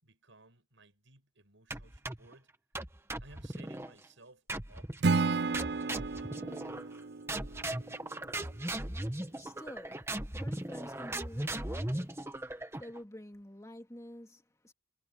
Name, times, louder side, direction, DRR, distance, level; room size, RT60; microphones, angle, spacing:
voice 1, 0.0-2.5 3.2-5.4 5.8-6.5, right 2 dB, 85° right, 6.3 m, -59 dB
sound 1, 1.7-2.3 2.7-3.9 4.5-5.0 5.5-7.0 7.3-13.0, right 1 dB, 15° right, 1.3 m, -38 dB
Acoustic guitar / Strum, 5.0-8.2, right 4 dB, 60° right, 0.5 m, -32 dB
voice 2, 8.9-10.1 10.4-14.7, equal, 15° left, 2.5 m, -50 dB
head